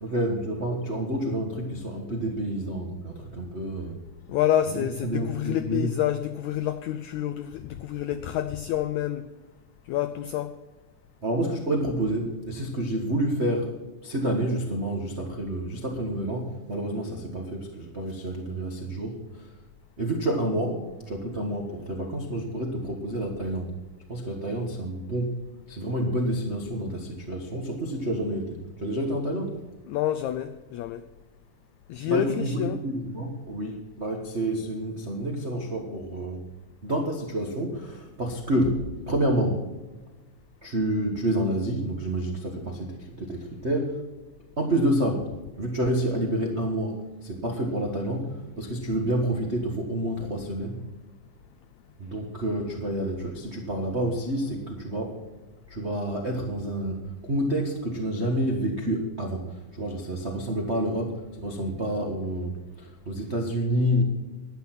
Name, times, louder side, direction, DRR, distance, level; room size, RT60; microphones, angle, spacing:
voice 1, 0.0-4.0 4.7-5.9 11.2-13.8 14.0-19.5 20.0-23.7 24.1-25.4 25.7-29.6 32.1-36.4 36.8-39.6 40.6-44.0 44.6-50.8 52.0-55.2 55.7-64.0, right 1 dB, 60° right, 0.6 m, -29 dB
voice 2, 4.3-9.3 9.9-10.6 29.9-31.0 31.9-32.8, left 11 dB, 90° left, 1.6 m, -28 dB
11.5 x 9.9 x 5.9 m
omnidirectional pair, 4.0 m